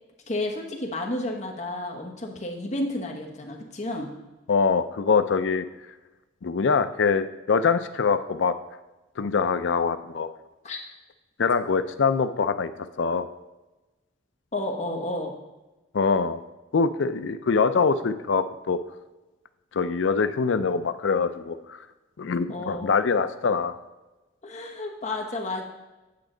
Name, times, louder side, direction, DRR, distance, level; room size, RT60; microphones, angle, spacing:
voice 1, 0.3-4.1 10.6-10.8 14.5-15.3 22.5-22.9 24.4-25.6, left 1 dB, 35° left, 0 dB, 1.1 m, -31 dB
voice 2, 4.5-5.7 6.4-8.5 9.2-10.3 11.4-12.7 13.0-13.3 15.9-16.4 16.7-18.8 19.7-21.9 22.2-23.8, left 5 dB, 70° left, 11 dB, 0.4 m, -24 dB
8.5 x 5.9 x 3.8 m, 1.1 s
head